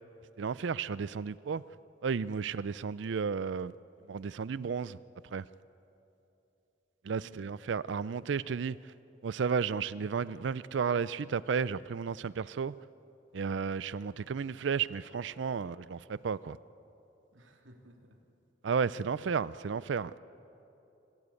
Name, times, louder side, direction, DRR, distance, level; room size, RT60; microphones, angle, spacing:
voice 1, 0.4-1.6 2.0-3.7 4.1-5.0 5.3-5.4 7.0-8.8 9.2-12.8 13.3-16.6 18.6-20.2, right 6 dB, 70° right, 18 dB, 0.4 m, -33 dB
voice 2, 7.1-7.6 17.3-18.2, right 1 dB, 90° right, 2 dB, 2.5 m, -58 dB
25.5 x 15.5 x 8.4 m, 2.9 s
head